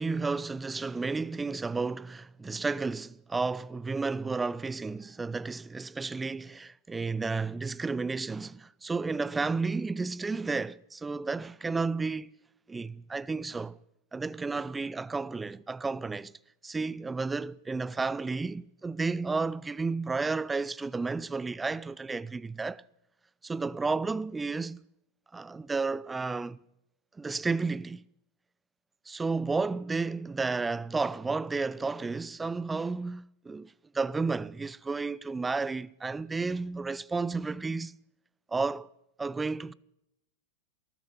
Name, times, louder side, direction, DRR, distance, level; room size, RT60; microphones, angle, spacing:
voice 1, 0.0-12.3 12.7-13.8 14.1-16.3 16.6-22.8 23.4-24.8 25.3-26.6 27.2-28.0 29.1-37.9 38.5-38.9 39.2-39.7, right 4 dB, 15° right, 0.7 m, -32 dB
19.5 x 14.0 x 9.9 m
figure-of-eight pair, 95°, 0 cm